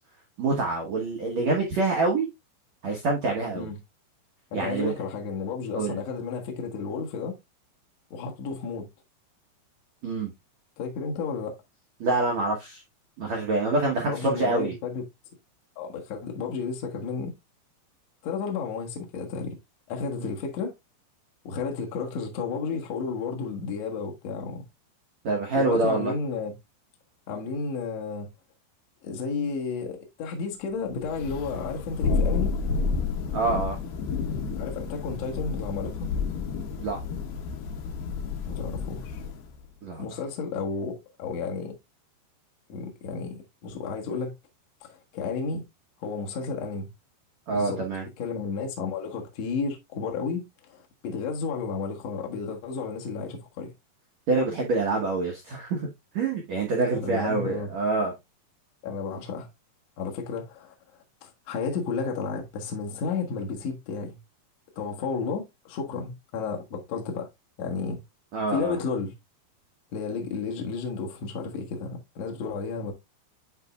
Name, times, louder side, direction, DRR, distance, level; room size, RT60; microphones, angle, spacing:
voice 1, 0.4-2.3 2.8-3.7 4.5-4.9 5.8-6.0 10.0-10.3 12.0-12.8 13.2-14.8 25.2-26.1 33.3-33.8 36.8-37.0 39.8-40.1 47.5-48.1 54.3-55.9 56.1-58.1 68.3-68.8, right 3 dB, 70° right, 1.6 m, -26 dB
voice 2, 4.5-7.4 8.1-8.9 10.8-11.6 14.0-15.0 15.7-17.3 18.2-19.5 19.9-20.7 21.4-24.6 25.5-26.5 27.3-28.3 29.0-32.5 34.6-36.1 38.4-39.2 40.0-41.7 42.7-44.3 44.8-45.6 46.0-46.9 47.5-47.8 48.2-53.7 57.0-57.7 58.8-59.5 60.0-60.7 61.2-64.2 64.7-67.3 67.6-68.0 68.5-69.1 69.9-72.9, left 5 dB, 90° left, 1.4 m, -32 dB
Thunder, 31.0-39.5, left 4 dB, 70° left, 2.6 m, -30 dB
10.0 x 4.1 x 2.4 m
omnidirectional pair, 5.2 m